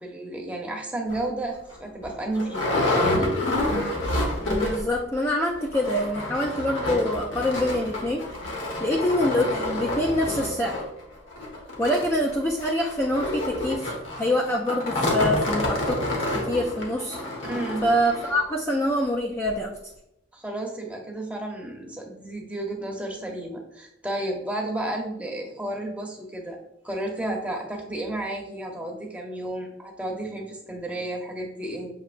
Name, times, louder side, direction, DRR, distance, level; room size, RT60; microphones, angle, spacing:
voice 1, 0.0-3.3 17.5-17.9 20.3-26.6 26.8-31.9, right 1 dB, 5° right, 0 dB, 0.7 m, -32 dB
sound 1, 1.1-1.2 1.7-1.8 2.0-5.0 5.2-5.3 5.6-18.4 19.0-19.1 19.5-19.6, left 1 dB, 75° left, 1.1 m, -28 dB
voice 2, 4.4-8.3 8.8-10.8 11.8-16.0 16.3-17.2 17.8-19.7, left 1 dB, 15° left, -2 dB, 0.4 m, -25 dB
6.6 x 2.8 x 2.5 m, 0.82 s
head